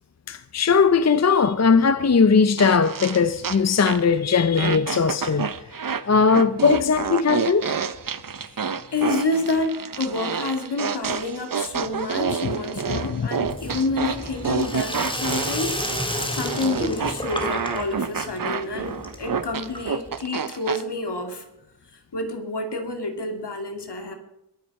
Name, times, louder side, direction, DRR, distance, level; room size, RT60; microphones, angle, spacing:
voice 1, 0.3-5.5 6.1-7.7 12.9-13.3, left 5 dB, 40° left, 0.6 m, -19 dB
sound 1, 2.6-4.2 4.6-20.8, right 6 dB, 55° right, 0.8 m, -28 dB
voice 2, 8.5-15.7 16.3-21.4 22.1-24.1, left 2 dB, 75° left, 2.4 m, -28 dB
Sink (filling or washing), 13.4-20.2, left 1 dB, 10° left, 2.3 m, -31 dB
22.0 x 7.6 x 5.4 m
wide cardioid pair, 85°, 41 cm